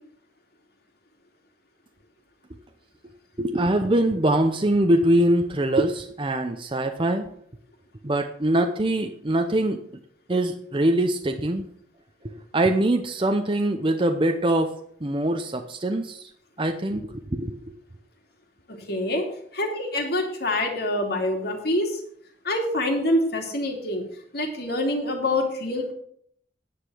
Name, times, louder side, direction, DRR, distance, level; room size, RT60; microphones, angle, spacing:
voice 1, 3.4-7.3 8.0-9.8 10.3-11.7 12.5-14.7 15.0-16.3 16.6-17.5, right 1 dB, 25° right, 5 dB, 0.7 m, -23 dB
voice 2, 18.7-22.0 22.4-24.0 24.3-25.9, left 1 dB, 55° left, 2 dB, 2.7 m, -26 dB
9.9 x 9.7 x 6.3 m, 0.66 s
head